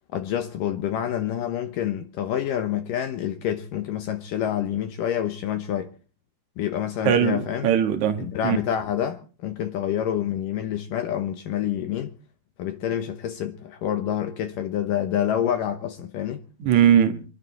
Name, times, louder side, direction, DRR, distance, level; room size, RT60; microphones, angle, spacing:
voice 1, 0.1-5.9 6.6-7.7 8.2-12.1 12.6-16.4, left 10 dB, 70° left, 2.5 m, -27 dB
voice 2, 7.0-8.6 16.6-17.2, right 9 dB, 60° right, 2.5 m, -20 dB
25.5 x 12.0 x 4.3 m
omnidirectional pair, 4.3 m